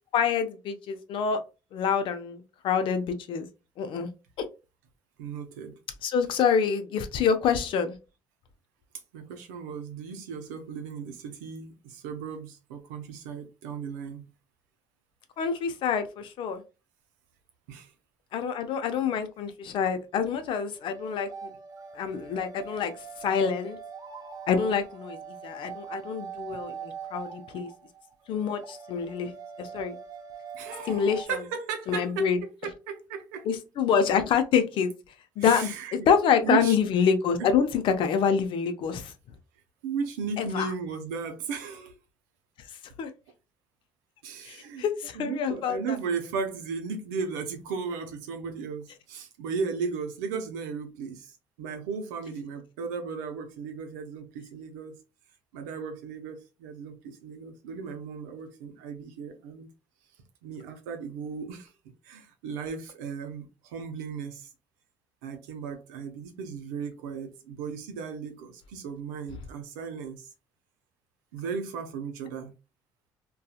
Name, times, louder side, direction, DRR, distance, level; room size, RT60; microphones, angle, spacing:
voice 1, 0.1-1.4 1.7-3.5 3.8-4.1 6.0-7.9 15.4-16.6 18.3-21.5 21.9-22.9 23.2-23.8 24.5-27.7 28.3-29.3 29.6-30.0 30.9-31.4 31.9-32.4 33.4-34.9 35.4-39.1 40.4-40.7 43.0-43.1 44.4-46.0, left 7 dB, 65° left, 0.5 m, -26 dB
voice 2, 5.2-5.8 9.1-14.3 17.7-17.9 30.5-32.3 32.6-33.5 35.4-36.8 37.4-37.5 39.8-41.9 44.2-44.8 45.1-55.0 55.5-59.7 60.4-61.7 62.0-64.5 65.2-70.3 71.3-72.5, right 5 dB, 90° right, 0.6 m, -36 dB
sound 1, 20.2-31.2, right 6 dB, 45° right, 0.6 m, -43 dB
2.7 x 2.3 x 2.3 m
hypercardioid pair, 60°, 9 cm